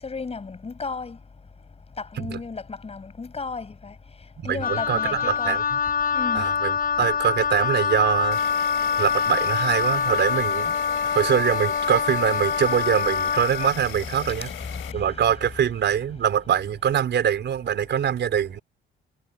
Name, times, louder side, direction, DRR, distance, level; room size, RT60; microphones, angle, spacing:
voice 1, 0.0-1.2 2.0-3.9 4.4-5.6 6.1-6.4 7.0-7.1 14.4-15.0, left 4 dB, 30° left, 7.5 m, -34 dB
voice 2, 4.4-5.8 6.3-8.4 9.0-10.7 11.0-14.5 14.9-18.6, right 9 dB, 65° right, 4.9 m, -24 dB
Wind instrument woodwind instrument, 4.6-13.8, left 6 dB, 50° left, 5.0 m, -25 dB
Insect, 8.3-14.9, left 12 dB, 85° left, 3.1 m, -38 dB
cardioid pair, 90°, 20 cm